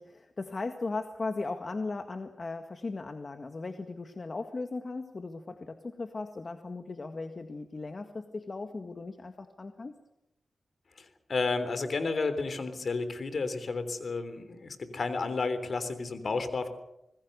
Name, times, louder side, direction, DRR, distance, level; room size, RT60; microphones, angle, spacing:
voice 1, 0.0-10.0, left 3 dB, 50° left, 6 dB, 1.8 m, -37 dB
voice 2, 11.0-16.7, left 4 dB, 65° left, 11 dB, 3.4 m, -32 dB
26.5 x 20.5 x 6.7 m, 0.84 s
cardioid pair, 60°, 0 cm